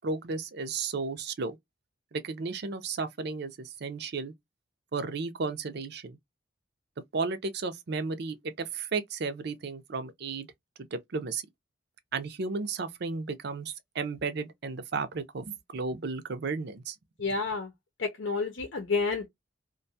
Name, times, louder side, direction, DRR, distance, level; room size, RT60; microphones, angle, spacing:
voice 1, 0.0-1.6 2.1-4.3 4.9-6.2 7.1-10.5 10.9-11.4 12.1-17.0, right 4 dB, 60° right, 0.5 m, -34 dB
voice 2, 17.2-17.7 18.0-19.3, left 4 dB, 75° left, 0.7 m, -30 dB
2.5 x 2.2 x 2.6 m
head